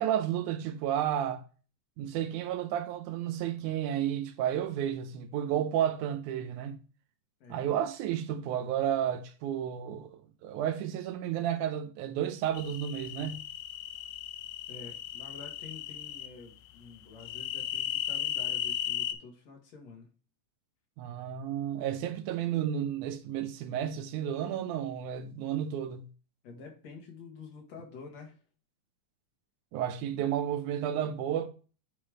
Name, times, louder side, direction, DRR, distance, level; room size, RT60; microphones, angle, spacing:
voice 1, 0.0-1.4 2.0-6.8 7.5-13.5 21.0-26.1 29.7-31.5, right 10 dB, 90° right, 2.2 m, -32 dB
sound 1, 12.5-16.3 17.2-19.1, left 12 dB, 80° left, 1.9 m, -36 dB
voice 2, 14.7-20.1 26.4-28.4, left 4 dB, 65° left, 2.8 m, -49 dB
8.5 x 3.2 x 4.9 m
omnidirectional pair, 3.4 m